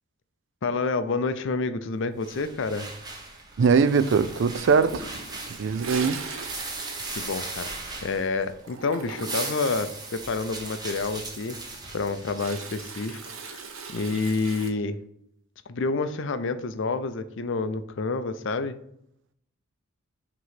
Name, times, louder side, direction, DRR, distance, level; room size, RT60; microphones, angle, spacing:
voice 1, 0.6-2.9 7.2-11.6 11.9-13.2 13.5-13.6 13.9-15.0 15.7-18.8, left 3 dB, 65° left, 0.5 m, -28 dB
sound 1, 2.2-8.6 9.0-13.6, right 3 dB, 20° right, 1.0 m, -38 dB
voice 2, 3.6-5.1 5.5-6.2, right 5 dB, 60° right, 0.4 m, -21 dB
Toilet flush, 4.7-8.2 8.4-9.6 11.7-14.7, right 4 dB, 85° right, 1.0 m, -40 dB
6.0 x 3.0 x 5.7 m
head